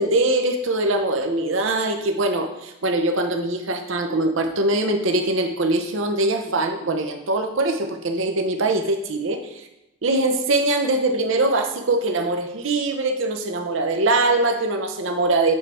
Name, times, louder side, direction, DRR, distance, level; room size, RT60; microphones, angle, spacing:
voice 1, 0.0-9.6 10.0-15.5, right 2 dB, 65° right, 6 dB, 0.7 m, -22 dB
7.3 x 3.5 x 4.3 m, 0.90 s
head